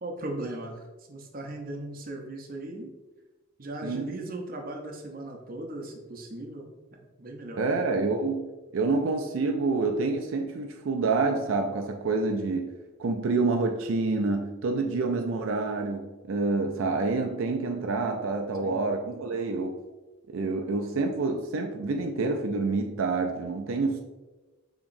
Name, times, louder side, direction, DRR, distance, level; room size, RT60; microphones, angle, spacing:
voice 1, 0.0-2.9 3.6-7.7 18.6-18.9, right 1 dB, 45° right, 2 dB, 0.7 m, -38 dB
voice 2, 7.6-12.7 13.0-19.8 20.3-24.0, right 3 dB, 80° right, 3 dB, 0.4 m, -27 dB
7.0 x 3.0 x 2.6 m, 1.2 s
head